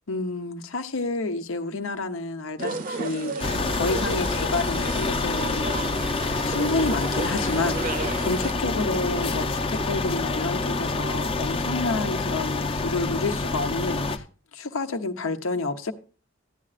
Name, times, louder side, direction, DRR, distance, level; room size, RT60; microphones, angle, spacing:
voice 1, 0.1-6.0 6.4-14.2 14.5-15.9, left 3 dB, 85° left, 0.9 m, -29 dB
sound 1, 2.6-8.5, right 3 dB, 45° right, 0.7 m, -34 dB
sound 2, 3.4-14.2, left 3 dB, 25° left, 0.6 m, -27 dB
13.5 x 9.8 x 2.5 m
head